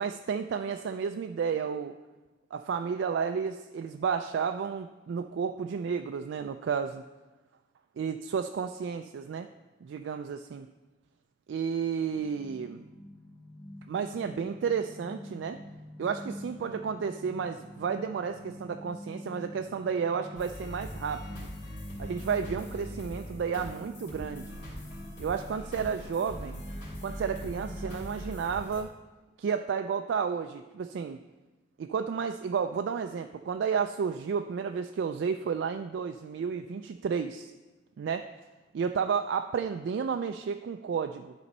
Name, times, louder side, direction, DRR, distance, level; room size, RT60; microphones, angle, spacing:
voice 1, 0.0-1.9 2.5-7.0 8.0-9.5 9.8-10.7 11.5-12.9 13.9-15.6 16.0-21.5 22.0-24.5 25.2-26.6 27.0-28.9 29.4-31.2 31.8-37.5 38.0-38.3 38.7-41.3, right 6 dB, 70° right, 7 dB, 0.3 m, -32 dB
sound 1, 12.1-28.1, equal, 90° left, 2.4 m, -46 dB
sound 2, 20.3-28.8, equal, 65° left, 2.7 m, -42 dB
11.0 x 4.2 x 5.3 m, 1.2 s
head